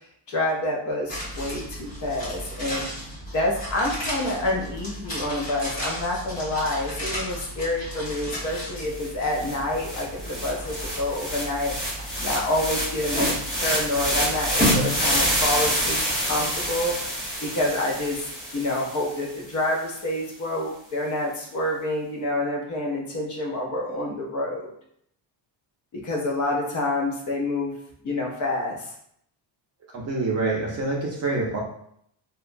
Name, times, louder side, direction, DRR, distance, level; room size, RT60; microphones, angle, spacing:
voice 1, 0.3-2.8 3.3-10.1 10.4-11.7 12.2-17.1 17.4-18.3 18.5-24.7 25.9-27.7 28.0-28.9, left 1 dB, 40° left, -1 dB, 0.5 m, -27 dB
sound 1, 1.1-16.3 16.5-16.6, equal, 20° left, 1.0 m, -33 dB
sound 2, 8.6-8.7 8.9-19.3, equal, ahead, 1.4 m, -28 dB
voice 2, 29.9-31.6, right 3 dB, 35° right, -3 dB, 0.5 m, -26 dB
2.8 x 2.2 x 2.5 m, 0.69 s
cardioid pair, 165°, 48 cm